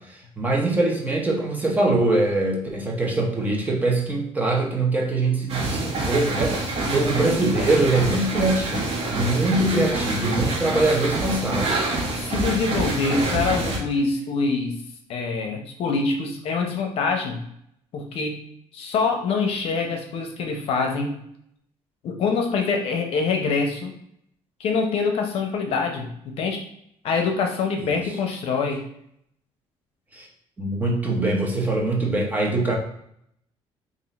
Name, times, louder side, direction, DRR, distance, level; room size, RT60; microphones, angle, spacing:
voice 1, 0.0-11.8 13.6-13.8 27.8-28.0 30.1-30.3 30.6-32.8, right 2 dB, 15° right, -2 dB, 0.8 m, -23 dB
sound 1, 5.5-13.8, right 2 dB, 60° right, 1.2 m, -27 dB
voice 2, 6.8-7.7 12.2-14.7 15.1-17.4 17.9-21.2 22.0-23.9 24.6-26.6 27.0-28.8, left 4 dB, 60° left, 3 dB, 0.7 m, -25 dB
3.6 x 2.6 x 4.1 m, 0.71 s
cardioid pair, 155°, 11 cm